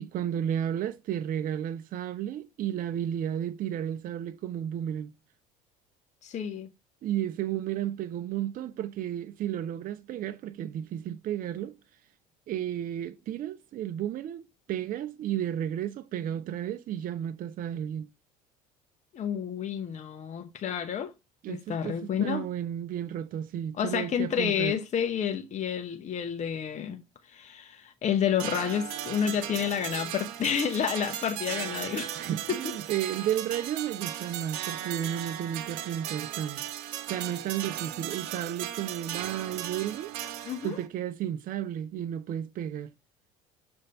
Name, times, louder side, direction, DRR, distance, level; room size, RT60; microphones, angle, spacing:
voice 1, 0.0-5.1 7.0-11.8 12.5-18.1 21.4-24.8 32.2-36.6 37.1-40.1 40.6-42.9, right 10 dB, 50° right, 0.6 m, -33 dB
voice 2, 6.2-6.7 19.1-21.1 21.5-22.5 23.8-27.0 27.3-32.2 32.5-32.6 40.5-40.8, left 8 dB, 40° left, 0.9 m, -30 dB
sound 1, 28.4-40.9, right 12 dB, 75° right, 0.9 m, -37 dB
6.5 x 3.5 x 5.6 m
hypercardioid pair, 75°, 19 cm